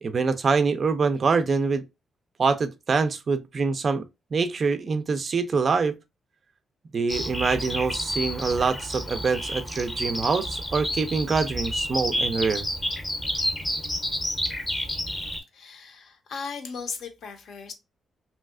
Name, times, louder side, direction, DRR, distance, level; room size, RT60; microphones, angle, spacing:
voice 1, 0.0-1.8 2.4-4.0 4.3-6.0 6.9-12.7, right 4 dB, 35° right, 0.3 m, -25 dB
Bird vocalization bird call bird song, 7.1-15.4, equal, 10° left, 0.6 m, -30 dB
voice 2, 15.5-17.7, left 5 dB, 60° left, 0.6 m, -37 dB
3.1 x 2.7 x 2.3 m
wide cardioid pair, 175°, 0 cm